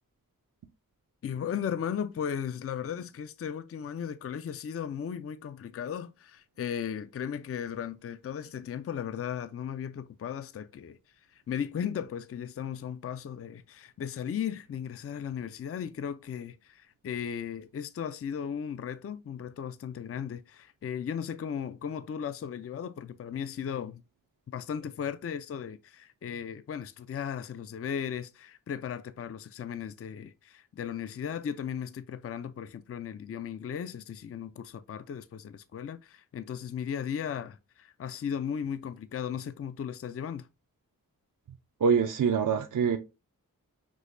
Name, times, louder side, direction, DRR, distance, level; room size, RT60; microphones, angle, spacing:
voice 1, 1.2-11.0 11.3-24.0 24.5-40.5, left 8 dB, 40° left, 0.4 m, -36 dB
voice 2, 41.8-43.0, right 6 dB, 60° right, 0.5 m, -24 dB
6.1 x 2.7 x 2.5 m
cardioid pair, 45°, 35 cm